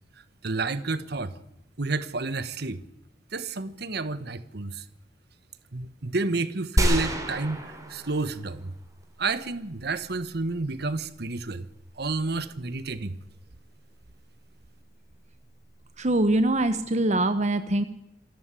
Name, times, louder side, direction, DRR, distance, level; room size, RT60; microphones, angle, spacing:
voice 1, 0.4-1.4 1.8-2.8 3.3-4.8 5.7-8.7 9.2-11.7 12.0-13.2, right 3 dB, 65° right, 13 dB, 1.3 m, -30 dB
sound 1, 6.8-8.7 9.0-9.1, right 1 dB, 20° right, 3.7 m, -27 dB
voice 2, 16.0-17.8, right 1 dB, 40° right, 10 dB, 1.1 m, -23 dB
27.0 x 13.5 x 8.4 m, 0.85 s
head